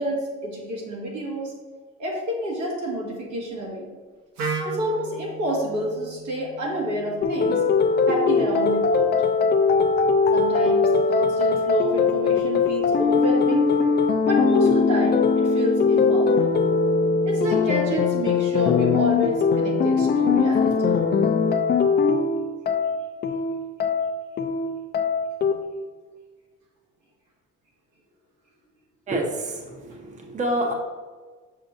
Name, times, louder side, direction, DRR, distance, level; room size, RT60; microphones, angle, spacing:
voice 1, 0.0-1.5 2.0-3.9 4.6-7.6 8.1-9.1 10.3-13.7 14.3-16.6 17.2-20.9, equal, 90° right, -2 dB, 1.8 m, -29 dB
Wind instrument woodwind instrument, 4.4-8.2, right 3 dB, 65° right, 0.9 m, -35 dB
sound 1, 7.2-25.5, left 5 dB, 35° left, 0.4 m, -21 dB
voice 2, 29.1-30.7, right 1 dB, 25° right, 1 dB, 0.7 m, -27 dB
6.5 x 5.9 x 2.6 m, 1.4 s
cardioid pair, 175°, 29 cm